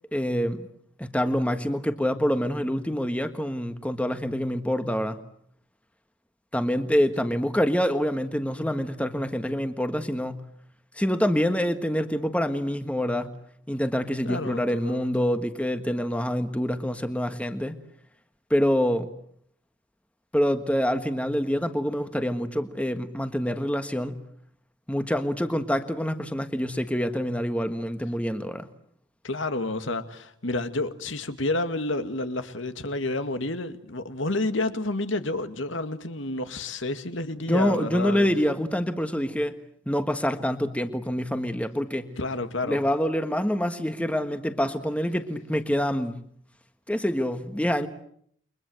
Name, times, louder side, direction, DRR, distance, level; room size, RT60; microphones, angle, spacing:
voice 1, 0.1-0.7 1.0-5.2 6.5-10.4 11.0-13.3 13.7-17.8 18.5-19.1 20.3-24.2 24.9-28.7 37.5-39.5 39.9-42.1 42.6-46.2 46.9-47.9, equal, 5° left, 1.4 m, -26 dB
voice 2, 14.2-15.1 29.2-38.3 42.2-42.8, left 2 dB, 75° left, 2.1 m, -30 dB
29.5 x 23.5 x 7.9 m
head